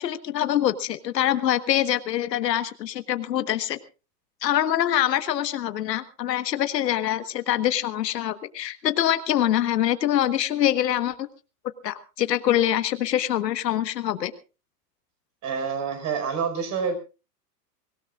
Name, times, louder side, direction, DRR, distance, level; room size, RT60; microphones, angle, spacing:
voice 1, 0.0-3.8 4.4-11.2 11.8-14.3, left 11 dB, 85° left, 11 dB, 1.5 m, -24 dB
voice 2, 15.4-16.9, right 6 dB, 35° right, 7 dB, 5.1 m, -27 dB
24.0 x 17.0 x 2.5 m, 0.32 s
hypercardioid pair, 130°, 48 cm